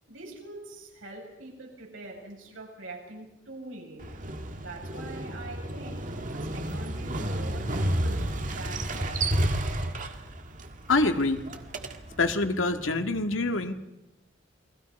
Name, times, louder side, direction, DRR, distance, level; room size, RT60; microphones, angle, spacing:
voice 1, 0.1-4.1 4.6-9.4, right 2 dB, 85° right, -1 dB, 7.0 m, -43 dB
Motorcycle, 4.0-12.3, right 1 dB, 40° right, 1.7 m, -31 dB
voice 2, 10.9-11.6 12.2-13.7, left 3 dB, 85° left, 7 dB, 1.9 m, -26 dB
29.0 x 21.0 x 5.4 m, 0.92 s
head